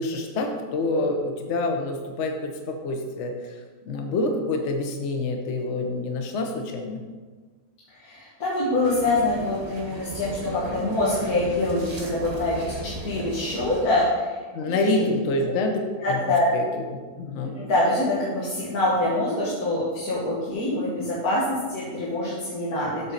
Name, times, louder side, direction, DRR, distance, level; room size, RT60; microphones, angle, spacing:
voice 1, 0.0-3.3 3.9-7.0 14.5-16.2 16.5-16.7 16.9-17.6, left 2 dB, 55° left, 3 dB, 1.0 m, -27 dB
voice 2, 8.0-14.4 14.7-15.0 16.0-16.5 17.4-23.1, left 1 dB, 85° left, -8 dB, 1.9 m, -25 dB
sound 1, 8.8-13.9, right 2 dB, 35° right, 0.8 m, -36 dB
7.9 x 3.8 x 5.7 m, 1.4 s
omnidirectional pair, 1.5 m